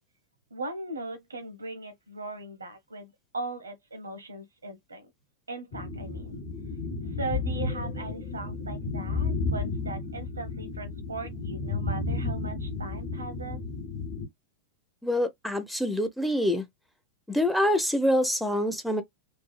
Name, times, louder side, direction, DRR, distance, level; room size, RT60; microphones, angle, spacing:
voice 1, 0.5-5.1 5.5-6.3 7.2-13.6, right 3 dB, 85° right, 0.8 m, -39 dB
sound 1, 5.7-14.3, left 3 dB, 50° left, 1.1 m, -32 dB
voice 2, 15.0-16.6 17.3-19.0, left 1 dB, ahead, 0.5 m, -25 dB
2.7 x 2.4 x 2.3 m
figure-of-eight pair, 95°, 0 cm